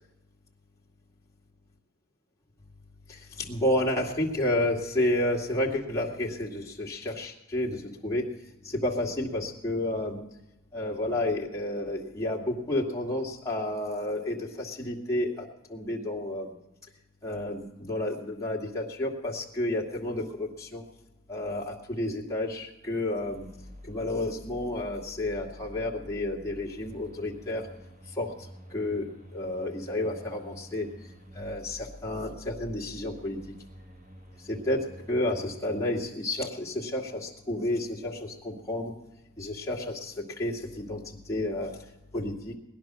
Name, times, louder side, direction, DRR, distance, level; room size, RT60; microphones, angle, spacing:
voice 1, 3.1-8.2 8.6-10.2 10.7-16.5 17.2-20.8 21.3-23.5 23.8-27.7 28.2-28.3 28.7-30.9 31.3-33.4 34.4-38.9 39.4-41.0 41.3-41.7 42.1-42.5, left 1 dB, 15° left, -3 dB, 2.2 m, -31 dB
sound 1, 23.1-35.8, equal, 40° right, 2.0 m, -48 dB
19.5 x 11.0 x 6.2 m, 0.97 s
head